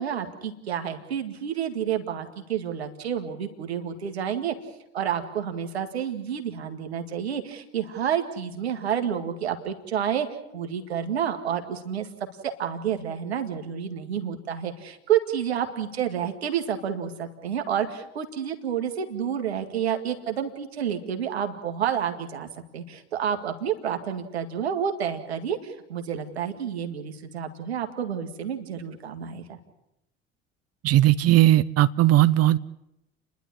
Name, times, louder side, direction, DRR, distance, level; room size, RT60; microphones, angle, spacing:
voice 1, 0.0-4.5 4.9-10.3 10.5-12.1 12.4-29.6, right 8 dB, 90° right, 6 dB, 2.0 m, -29 dB
voice 2, 30.8-32.6, right 14 dB, 50° right, 15 dB, 0.7 m, -18 dB
30.0 x 11.5 x 9.9 m, 0.86 s
hypercardioid pair, 60°, 31 cm